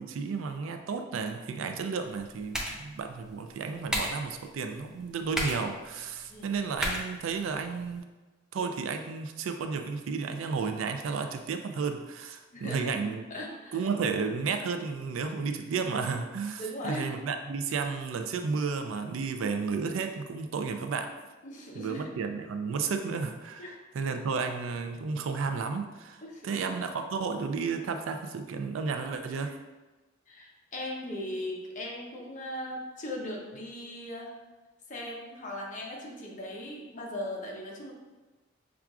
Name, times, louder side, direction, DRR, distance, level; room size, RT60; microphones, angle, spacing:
voice 1, 0.0-8.0 8.5-13.2 13.7-21.1 21.8-23.7 23.9-29.6, right 5 dB, 80° right, 6 dB, 0.4 m, -32 dB
sound 1, 2.0-8.0, equal, 5° right, 0.5 m, -37 dB
voice 2, 12.5-13.8 16.6-17.1 21.4-22.1 23.6-23.8 26.2-26.6 30.3-34.3 34.9-37.9, left 1 dB, 40° left, -2 dB, 0.8 m, -38 dB
5.8 x 2.4 x 2.3 m, 1.2 s
head